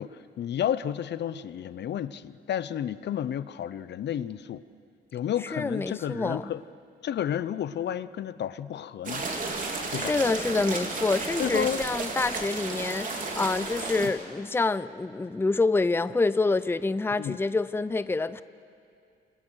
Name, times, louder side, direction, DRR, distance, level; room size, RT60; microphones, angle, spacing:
voice 1, 0.0-4.7 5.1-6.6 7.0-9.3 9.9-10.2 11.4-11.8 17.2-17.4, left 10 dB, 60° left, 16 dB, 0.8 m, -31 dB
voice 2, 5.5-6.5 10.0-18.4, left 3 dB, 10° left, 15 dB, 0.6 m, -27 dB
sound 1, 9.0-14.1, right 3 dB, 40° right, 3.9 m, -33 dB
28.5 x 27.0 x 6.4 m, 2.4 s
cardioid pair, 90°, 20 cm